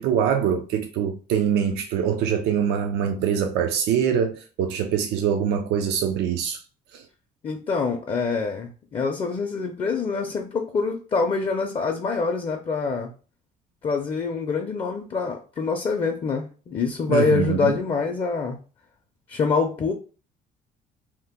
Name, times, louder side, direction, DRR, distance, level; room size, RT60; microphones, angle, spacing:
voice 1, 0.0-6.6 6.9-7.0 17.1-17.8, right 8 dB, 80° right, 0.4 m, -24 dB
voice 2, 7.4-13.1 13.8-18.6 19.3-19.9, left 4 dB, 30° left, 0.5 m, -25 dB
2.8 x 2.1 x 3.5 m
cardioid pair, 110°, 17 cm